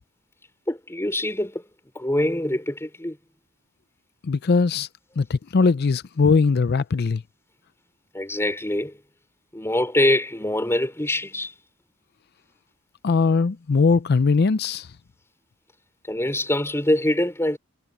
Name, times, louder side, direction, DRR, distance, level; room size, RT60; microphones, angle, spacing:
voice 1, 0.7-1.6 1.9-3.2 8.1-9.0 9.5-11.5 16.1-17.6, left 1 dB, 15° left, 4.7 m, -24 dB
voice 2, 4.2-4.9 5.2-7.2 13.0-14.9, left 4 dB, 50° left, 0.5 m, -20 dB
head